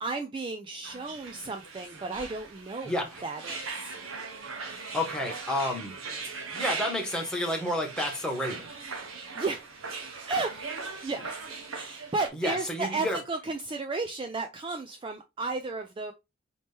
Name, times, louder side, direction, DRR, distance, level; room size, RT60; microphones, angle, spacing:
voice 1, 0.0-2.9 3.2-4.0 9.4-9.6 10.3-10.6 11.0-11.4 11.7-16.1, right 3 dB, 25° right, 0.4 m, -33 dB
sound 1, 0.8-12.3, right 4 dB, 85° right, 1.1 m, -39 dB
voice 2, 2.8-3.3 4.9-5.9 6.5-8.7 12.3-13.2, left 1 dB, 5° left, 1.3 m, -30 dB
4.2 x 2.9 x 3.5 m
head